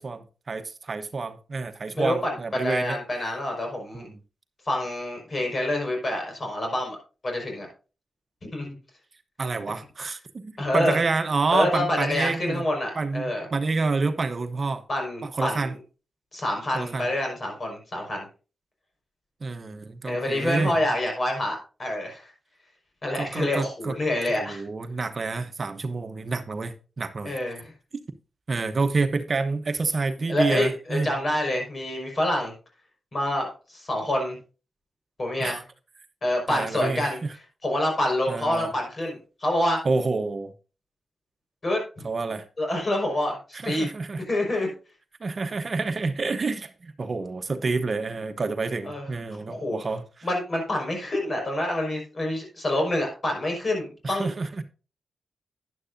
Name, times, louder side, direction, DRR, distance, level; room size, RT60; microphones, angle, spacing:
voice 1, 0.0-3.0 3.9-4.1 9.4-12.6 12.9-14.8 15.2-15.7 16.7-17.1 19.4-20.7 23.1-23.9 24.4-27.4 28.5-31.1 35.4-35.6 36.5-37.3 38.3-38.7 39.8-40.5 42.0-42.5 43.5-44.2 45.2-50.0 54.0-54.6, right 3 dB, 50° right, 0.9 m, -28 dB
voice 2, 1.9-2.3 2.6-4.1 4.6-7.0 7.2-7.7 8.5-8.7 10.6-11.0 11.5-13.5 14.9-15.8 16.3-18.2 20.0-22.3 23.0-24.6 27.2-27.7 30.3-32.5 33.1-34.4 35.2-35.6 36.2-37.2 37.6-39.8 41.6-41.8 42.6-43.9 44.3-44.7 48.8-49.0 49.3-49.8 50.2-54.3, left 1 dB, 50° left, 5.2 m, -27 dB
11.5 x 10.0 x 2.7 m
cardioid pair, 55°, 0 cm